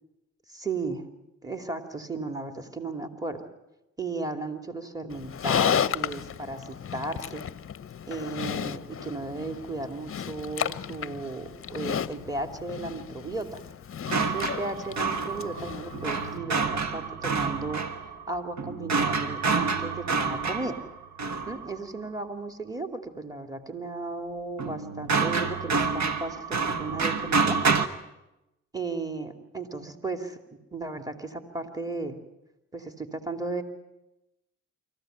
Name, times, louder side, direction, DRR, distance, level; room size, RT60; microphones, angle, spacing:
voice 1, 0.5-1.1 1.4-3.5 4.0-7.4 8.1-13.6 14.1-17.8 18.3-20.8 21.5-27.6 28.7-30.4 30.7-32.2 32.7-33.6, right 3 dB, 10° right, 6 dB, 2.5 m, -35 dB
Livestock farm animals working animals, 5.1-16.4, left 8 dB, 45° left, 0.8 m, -33 dB
sound 1, 14.1-21.8 24.6-27.9, right 4 dB, 60° right, 1.5 m, -28 dB
25.5 x 15.0 x 9.1 m, 0.95 s
supercardioid pair, 65°, 32 cm